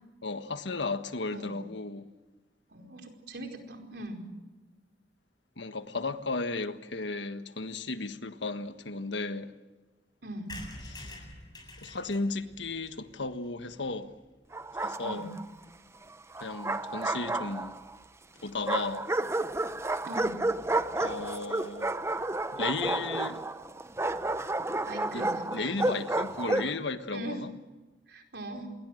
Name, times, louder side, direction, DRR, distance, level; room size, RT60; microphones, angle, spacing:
voice 1, 0.2-2.1 5.6-9.5 10.9-11.2 11.8-14.1 14.8-15.3 16.4-17.8 18.4-19.1 21.0-21.9 22.5-23.4 25.1-25.2 25.5-27.5, left 3 dB, 90° left, 1.5 m, -34 dB
voice 2, 2.7-4.2 10.2-10.5 15.0-15.3 20.0-20.4 24.8-25.7 27.1-27.4 28.1-28.7, right 1 dB, 70° right, 4.8 m, -40 dB
sound 1, 10.5-14.2 14.6-14.7 14.9-15.0 15.2-15.3 15.5-15.8, left 1 dB, 25° left, 7.8 m, -47 dB
Bark, 14.5-15.4 16.3-17.9 18.7-26.8, right 2 dB, 15° right, 0.8 m, -31 dB
29.0 x 22.0 x 6.5 m
head